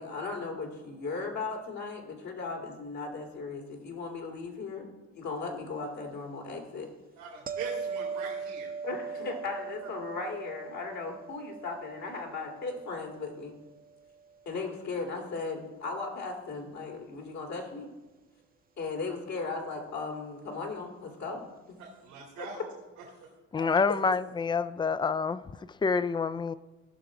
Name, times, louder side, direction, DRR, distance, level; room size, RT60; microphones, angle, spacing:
voice 1, 0.0-4.9 5.1-6.9 8.8-13.5 14.5-17.9 18.8-21.5 22.4-22.5 23.6-23.9, left 4 dB, 60° left, 2.2 m, -37 dB
voice 2, 7.2-8.7 9.8-9.9 21.8-22.6, right 5 dB, 90° right, 2.3 m, -42 dB
sound 1, 7.5-14.5 19.7-19.9, right 5 dB, 30° right, 0.7 m, -40 dB
voice 3, 23.5-25.4 25.8-26.5, left 5 dB, 15° left, 0.3 m, -27 dB
16.5 x 5.8 x 3.7 m
supercardioid pair, 70°, 31 cm